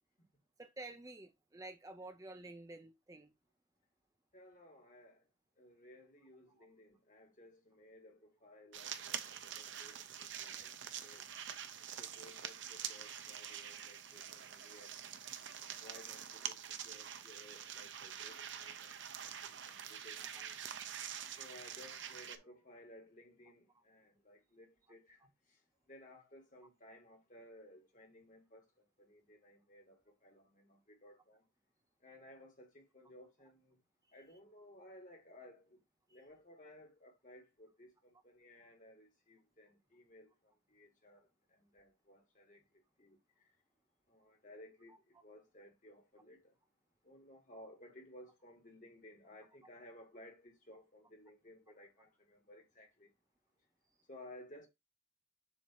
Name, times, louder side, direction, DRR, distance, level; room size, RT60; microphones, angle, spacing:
voice 1, 0.6-3.3 6.6-6.7, right 2 dB, 15° right, 0.5 m, -50 dB
voice 2, 4.3-5.3 5.6-11.3 12.0-15.3 15.8-18.9 19.2-20.6 21.4-25.6 25.9-31.4 32.0-33.8 34.1-35.8 36.1-42.6 43.0-43.6 44.1-46.5 47.0-53.1 54.1-54.7, left 1 dB, 40° left, 1.7 m, -58 dB
sound 1, 8.7-22.4, right 9 dB, 65° right, 0.7 m, -46 dB
7.2 x 2.8 x 4.6 m
head